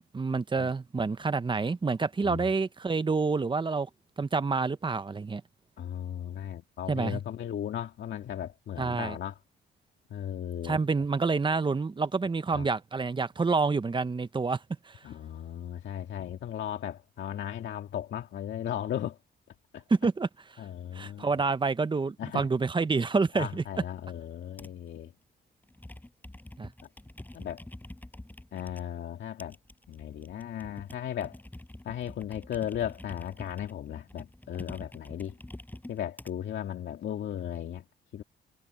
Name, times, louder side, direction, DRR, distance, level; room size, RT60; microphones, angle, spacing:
voice 1, 0.0-3.9 4.2-5.4 6.9-7.2 8.8-9.2 10.6-14.6 14.9-15.0 19.9-20.3 20.9-23.6 26.6-26.7, right 4 dB, 25° right, 1.1 m, -28 dB
voice 2, 5.8-9.4 10.1-10.8 12.5-12.7 15.0-19.2 19.7-19.8 20.6-21.3 22.2-22.5 23.3-25.1 27.3-27.6 28.5-29.6 29.9-31.4 31.8-35.3 35.9-37.8 38.1-38.2, left 10 dB, 65° left, 2.2 m, -36 dB
Computer keyboard, 24.6-24.9 25.6-28.8 29.4-36.3 37.0-37.6, left 1 dB, 10° left, 6.9 m, -46 dB
cardioid pair, 90°, 20 cm